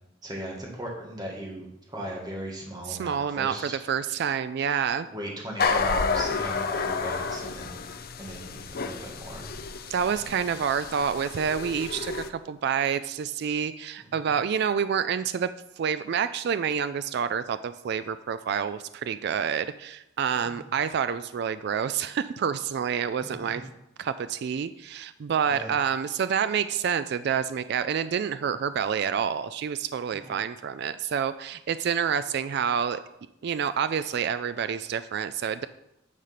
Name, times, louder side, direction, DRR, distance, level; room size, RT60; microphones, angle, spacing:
voice 1, 0.2-3.8 5.1-7.8 8.2-9.5 14.0-14.1 20.5-20.7 23.6-23.7 25.5-25.7 30.1-30.4, right 1 dB, 20° right, -2 dB, 1.8 m, -38 dB
voice 2, 2.9-5.1 9.9-15.5 15.8-23.6 24.0-33.0 33.4-35.7, right 7 dB, 55° right, 12 dB, 0.3 m, -28 dB
sound 1, 5.6-12.3, left 4 dB, 50° left, 0.6 m, -30 dB
9.5 x 5.1 x 5.8 m, 0.86 s
head